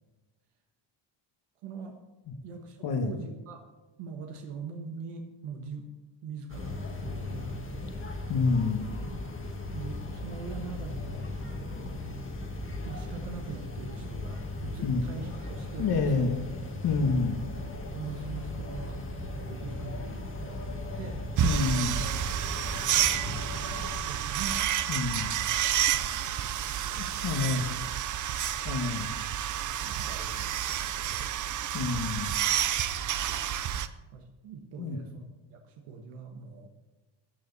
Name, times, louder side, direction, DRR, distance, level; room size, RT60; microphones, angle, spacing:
voice 1, 1.6-2.0 2.4-3.6 4.0-5.9 6.2-8.0 9.0-9.1 9.7-11.3 11.7-12.0 12.8-16.3 17.9-19.0 19.3-21.2 21.7-21.9 22.5-23.7 24.0-24.7 24.9-25.2 25.9-27.7 29.8-31.3 31.7-32.0 32.9-33.5 34.1-36.7, right 5 dB, 90° right, 3 dB, 1.4 m, -43 dB
sound 1, 6.5-24.0, left 2 dB, 25° left, 1.6 m, -37 dB
voice 2, 8.3-8.9 14.8-15.0 15.8-16.3 16.8-17.4 21.4-22.0 24.9-25.3 27.0-27.7 28.6-29.1 31.7-32.4 34.8-35.0, left 4 dB, 50° left, 5 dB, 1.4 m, -28 dB
sound 2, 21.4-33.9, right 10 dB, 40° right, 0.5 m, -30 dB
14.5 x 9.1 x 4.1 m, 1.1 s
cardioid pair, 145°, 49 cm